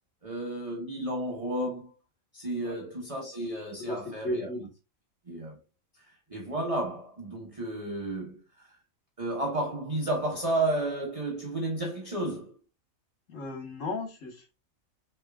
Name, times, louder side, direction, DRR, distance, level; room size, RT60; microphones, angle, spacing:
voice 1, 0.2-1.9 2.3-4.5 5.3-5.6 6.0-8.8 9.2-12.5, right 1 dB, 25° right, 1.2 m, -32 dB
voice 2, 3.8-4.7 13.3-14.6, left 1 dB, 65° left, 1.9 m, -35 dB
6.5 x 3.3 x 2.4 m
omnidirectional pair, 1.5 m